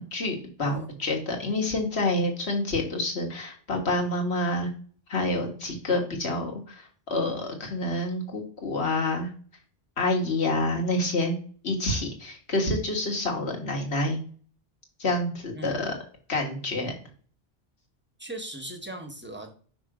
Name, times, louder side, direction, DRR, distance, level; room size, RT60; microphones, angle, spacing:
voice 1, 0.0-4.7 5.1-9.3 10.0-11.4 11.6-14.2 15.0-15.9 16.3-16.9, left 2 dB, 75° left, 1 dB, 1.9 m, -28 dB
voice 2, 18.2-19.5, right 1 dB, 10° right, 4 dB, 1.0 m, -38 dB
5.7 x 3.5 x 4.9 m, 0.43 s
omnidirectional pair, 1.1 m